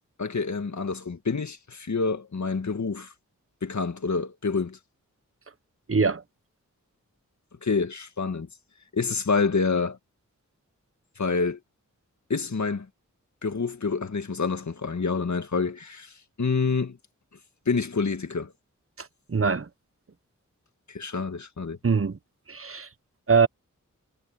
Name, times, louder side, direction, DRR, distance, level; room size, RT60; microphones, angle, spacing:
voice 1, 0.2-3.1 3.6-4.8 7.6-8.5 8.9-10.0 11.2-11.6 12.3-12.9 13.4-16.1 16.4-17.0 17.7-18.5 20.9-21.8, left 4 dB, 65° left, 1.9 m, -27 dB
voice 2, 5.9-6.2 19.0-19.7 21.8-22.2 22.5-22.9 23.3-23.5, right 5 dB, 45° right, 1.0 m, -23 dB
wide cardioid pair, 55°, 31 cm